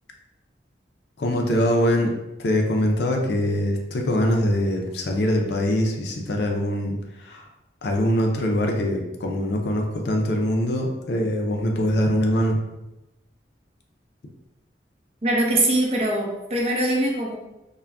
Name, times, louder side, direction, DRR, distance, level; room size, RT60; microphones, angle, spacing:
voice 1, 1.2-2.1 2.4-7.5 7.8-12.6, equal, 70° left, 2 dB, 0.4 m, -23 dB
voice 2, 15.2-17.4, right 1 dB, 35° right, -1 dB, 0.5 m, -22 dB
2.4 x 2.1 x 3.3 m, 0.96 s
head